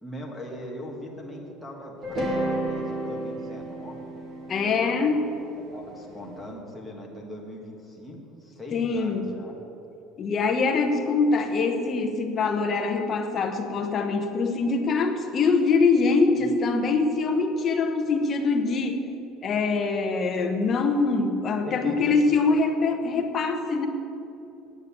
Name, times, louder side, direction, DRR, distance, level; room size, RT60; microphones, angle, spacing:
voice 1, 0.0-4.1 4.5-5.2 5.7-9.5 16.4-16.6 21.6-22.2, left 1 dB, 5° left, -3 dB, 1.6 m, -40 dB
sound 1, 2.0-6.2, right 1 dB, 25° right, 2.1 m, -32 dB
voice 2, 4.5-5.2 8.7-9.3 10.2-19.0 19.4-23.9, left 4 dB, 25° left, 5 dB, 1.0 m, -24 dB
9.4 x 9.4 x 8.4 m, 2.9 s
cardioid pair, 180°, 0 cm